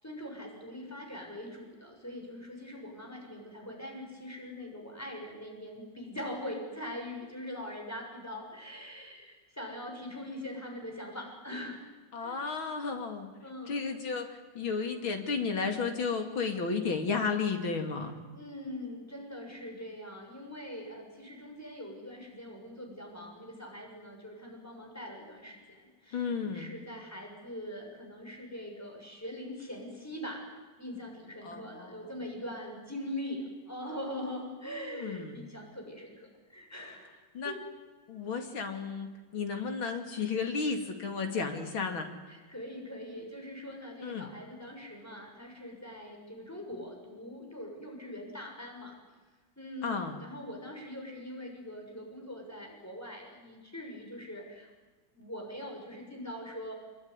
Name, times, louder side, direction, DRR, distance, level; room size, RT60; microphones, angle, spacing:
voice 1, 0.0-11.8 12.2-12.5 13.4-13.8 18.3-30.4 30.8-37.1 37.4-37.6 42.3-48.9 49.6-54.7 55.1-56.7, left 1 dB, 5° left, 1 dB, 6.5 m, -42 dB
voice 2, 12.1-13.3 13.7-18.2 26.1-26.7 31.4-32.0 34.7-35.4 37.4-37.5 38.1-42.1 44.0-44.3 49.8-50.2, left 5 dB, 75° left, 5 dB, 3.6 m, -33 dB
25.5 x 22.5 x 9.9 m, 1.3 s
omnidirectional pair, 2.2 m